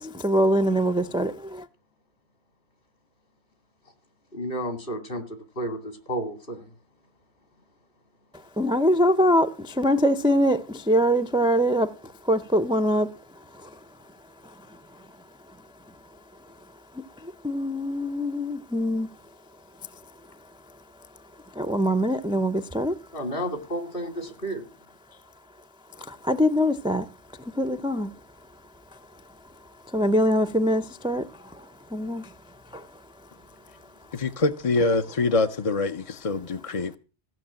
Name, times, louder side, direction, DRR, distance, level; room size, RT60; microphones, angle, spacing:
voice 1, 0.0-1.7 8.6-13.8 14.4-15.1 15.5-15.6 16.9-19.1 19.9-20.0 21.5-23.0 25.9-27.1 27.4-28.2 28.9-29.0 29.9-32.4 32.6-33.0, equal, 5° right, 0.5 m, -24 dB
voice 2, 4.3-6.7 23.1-24.7, right 1 dB, 55° left, 2.6 m, -32 dB
voice 3, 34.1-37.0, left 3 dB, 35° left, 0.7 m, -25 dB
15.5 x 6.6 x 8.7 m
omnidirectional pair, 1.1 m